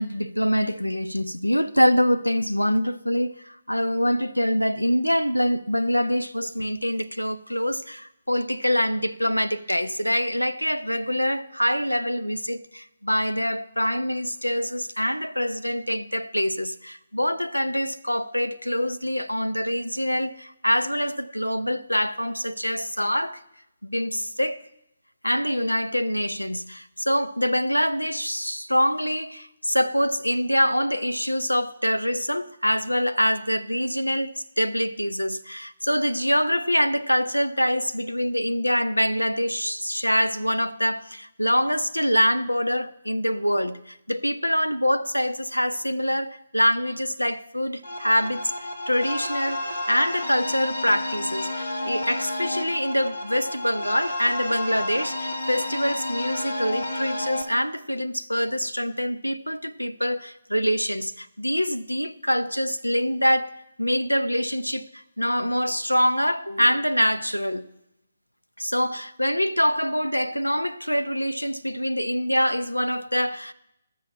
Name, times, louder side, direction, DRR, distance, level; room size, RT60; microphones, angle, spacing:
voice 1, 0.0-23.4 23.8-24.6 25.2-67.7 68.6-73.5, equal, 90° left, 0.6 m, -25 dB
sound 1, 47.8-57.4, left 1 dB, 75° left, 2.0 m, -31 dB
13.5 x 6.4 x 7.0 m
figure-of-eight pair, 140°, 0 cm